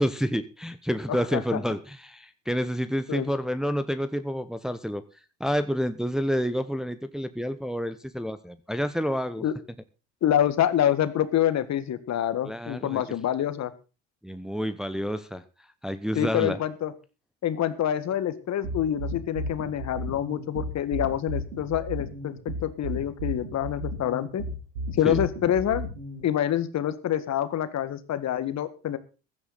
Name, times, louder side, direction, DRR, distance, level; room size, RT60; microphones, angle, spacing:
voice 1, 0.0-5.0 5.4-9.4 12.4-13.0 14.2-15.4 15.8-16.6 25.0-25.2, equal, ahead, 10 dB, 1.0 m, -29 dB
voice 2, 1.1-1.6 3.1-3.3 9.4-9.5 10.2-13.7 16.2-16.9 17.4-24.4 24.9-25.8 26.2-29.0, left 10 dB, 45° left, 12 dB, 1.8 m, -26 dB
sound 1, 18.6-26.2, right 1 dB, 85° right, 7.7 m, -33 dB
15.5 x 11.5 x 4.1 m, 0.33 s
hypercardioid pair, 70°, 37 cm